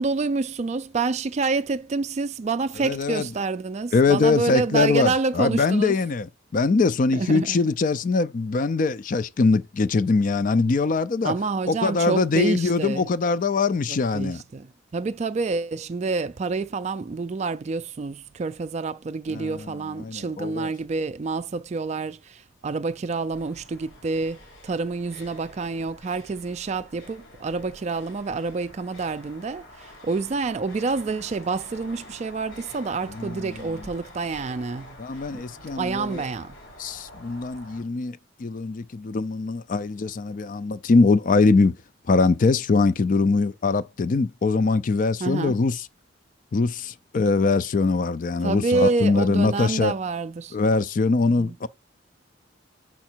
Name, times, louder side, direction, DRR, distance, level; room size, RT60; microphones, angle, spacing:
voice 1, 0.0-5.9 7.1-7.6 11.2-13.1 13.9-14.7 14.9-35.0 35.3-36.6 45.2-45.6 48.4-50.6 51.2-51.6, right 4 dB, 35° right, 0.3 m, -28 dB
voice 2, 2.8-3.3 3.9-11.3 11.7-14.4 19.3-20.7 33.1-33.8 35.0-36.2 36.8-41.8 42.1-45.9 46.5-49.9 50.5-51.7, left 3 dB, 45° left, 0.4 m, -22 dB
sound 1, 23.3-37.8, left 1 dB, 85° left, 3.7 m, -47 dB
7.2 x 5.8 x 4.5 m
head